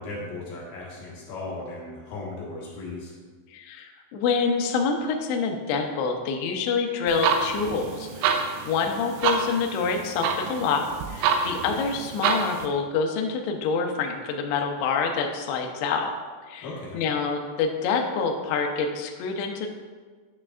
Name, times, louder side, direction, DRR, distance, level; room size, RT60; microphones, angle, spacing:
voice 1, 0.0-3.1 16.6-17.0, left 2 dB, 60° left, -6 dB, 2.8 m, -36 dB
voice 2, 3.5-16.1 16.5-16.7 16.9-19.7, left 5 dB, 80° left, 3 dB, 2.7 m, -27 dB
sound 1, 7.1-12.7, right 6 dB, 90° right, 3.2 m, -28 dB
10.0 x 6.5 x 2.4 m, 1.4 s
omnidirectional pair, 5.5 m